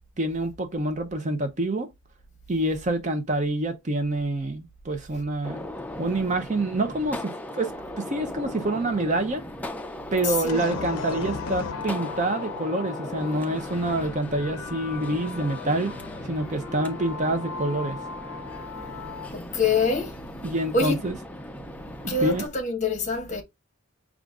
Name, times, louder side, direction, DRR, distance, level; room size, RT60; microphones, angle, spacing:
voice 1, 0.2-1.9 2.5-5.6 6.0-9.4 10.1-15.9 16.2-18.0 20.4-21.1 22.0-22.4, right 2 dB, 35° right, 0.6 m, -27 dB
Gunshot gunfire, 5.4-22.5, left 1 dB, 5° left, 0.4 m, -38 dB
voice 2, 10.2-10.6 19.3-20.2 20.7-21.0 21.9-23.4, left 4 dB, 35° left, 0.9 m, -25 dB
sound 1, 10.5-19.3, left 6 dB, 80° left, 0.5 m, -37 dB
5.0 x 2.4 x 3.5 m
head